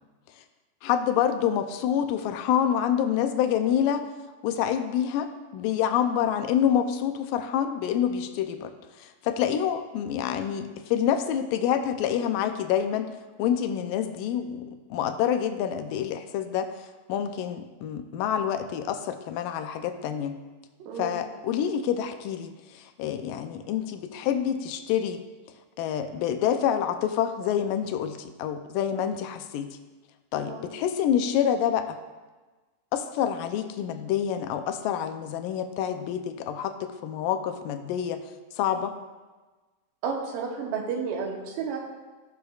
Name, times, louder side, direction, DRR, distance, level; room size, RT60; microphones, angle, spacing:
voice 1, 0.8-4.0 4.4-13.1 13.4-16.7 17.1-20.4 21.0-25.2 25.8-29.7 30.3-32.0 32.9-38.2 38.6-39.0, left 9 dB, 85° left, 8 dB, 2.3 m, -27 dB
voice 2, 20.8-21.2 30.4-30.6 40.0-41.8, right 5 dB, 85° right, 1 dB, 2.8 m, -32 dB
15.0 x 6.7 x 2.4 m, 1.3 s
omnidirectional pair, 3.9 m